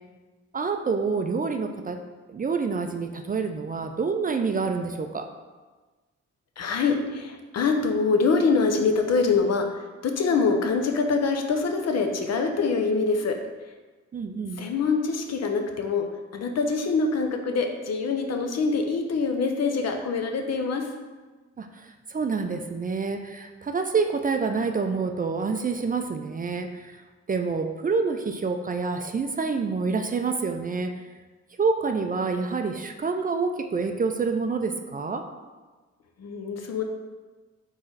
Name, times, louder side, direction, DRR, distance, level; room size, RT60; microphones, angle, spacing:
voice 1, 0.5-2.0 2.3-5.3 14.1-14.6 21.6-26.9 27.3-30.9 31.6-35.3, right 4 dB, 30° right, 6 dB, 0.4 m, -27 dB
voice 2, 6.6-13.4 14.6-16.1 16.3-20.9 36.2-36.8, left 4 dB, 60° left, 4 dB, 0.6 m, -24 dB
3.8 x 3.2 x 3.9 m, 1.3 s
supercardioid pair, 50°, 30 cm